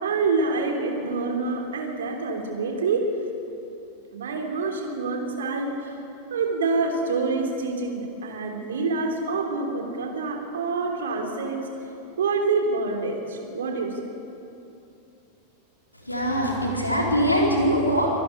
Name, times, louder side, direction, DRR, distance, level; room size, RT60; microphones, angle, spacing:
voice 1, 0.0-3.1 4.1-6.0 6.3-11.7 12.2-14.0, right 4 dB, 65° right, 2 dB, 3.3 m, -26 dB
voice 2, 15.9-18.1, equal, 85° left, -2 dB, 4.2 m, -22 dB
25.5 x 11.0 x 9.9 m, 2.8 s
figure-of-eight pair, 90°, 0 cm